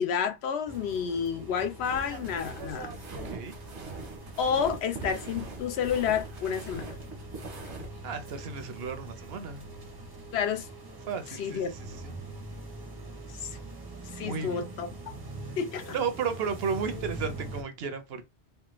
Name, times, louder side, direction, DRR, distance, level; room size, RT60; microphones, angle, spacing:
voice 1, 0.0-2.9 4.4-6.9 10.3-10.7 11.4-11.7 13.3-13.6 14.1-14.9 15.6-15.9, left 7 dB, 70° left, 0.9 m, -30 dB
sound 1, 0.7-17.6, right 2 dB, 25° right, 0.6 m, -43 dB
sound 2, 1.8-7.9, right 3 dB, 80° right, 1.3 m, -42 dB
voice 2, 3.1-3.5 8.0-9.7 11.1-12.1 14.2-14.6 15.9-18.2, right 6 dB, 65° right, 0.8 m, -34 dB
3.3 x 2.2 x 3.0 m
omnidirectional pair, 1.1 m